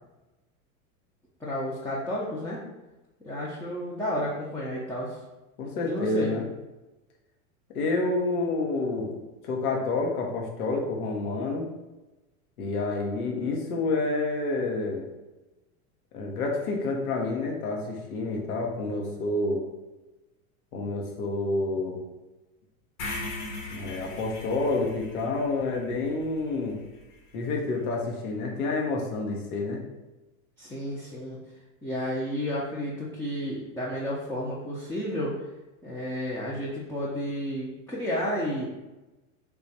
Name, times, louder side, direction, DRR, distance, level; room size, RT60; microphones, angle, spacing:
voice 1, 1.4-2.6 3.2-5.2 5.8-6.3 30.6-31.4 31.8-35.3 35.8-38.7, equal, 5° left, -7 dB, 0.4 m, -31 dB
voice 2, 5.6-6.5 7.7-9.2 9.4-11.7 12.6-15.1 16.1-19.6 20.7-22.0 23.7-26.8 27.3-29.8, left 3 dB, 85° left, 0 dB, 0.9 m, -28 dB
sound 1, 23.0-27.1, left 2 dB, 60° left, 1.1 m, -39 dB
3.4 x 2.3 x 4.0 m, 1.1 s
hypercardioid pair, 105°, 43 cm